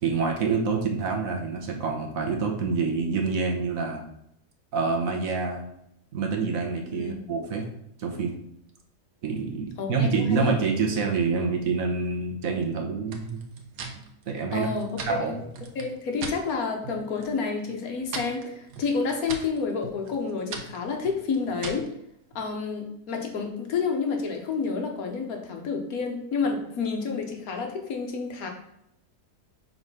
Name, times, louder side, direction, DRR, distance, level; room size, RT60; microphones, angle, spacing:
voice 1, 0.0-4.0 4.7-5.6 6.1-7.7 8.0-8.3 9.2-13.4 14.3-14.7 15.0-15.4, right 4 dB, 60° right, 2 dB, 1.3 m, -27 dB
voice 2, 9.8-10.5 14.5-15.3 15.7-21.9 22.3-28.5, left 5 dB, 65° left, 3 dB, 1.3 m, -29 dB
sound 1, 13.1-16.4 16.8-17.4 17.7-21.9, right 4 dB, 90° right, 1.4 m, -40 dB
4.8 x 3.8 x 5.5 m, 0.77 s
omnidirectional pair, 1.7 m